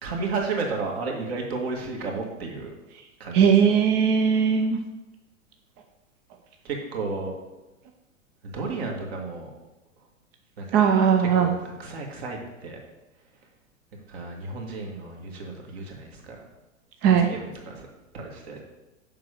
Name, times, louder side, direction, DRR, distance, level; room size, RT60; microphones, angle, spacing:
voice 1, 0.0-2.7 3.2-3.7 6.6-7.3 8.4-9.5 10.6-10.8 11.2-12.8 14.1-16.4 17.1-17.9 18.1-18.6, right 3 dB, 50° right, 1 dB, 2.0 m, -33 dB
voice 2, 3.3-4.8 10.7-11.5 17.0-17.3, right 7 dB, 25° right, 4 dB, 0.5 m, -19 dB
7.3 x 5.2 x 6.4 m, 1.1 s
figure-of-eight pair, 95°, 39 cm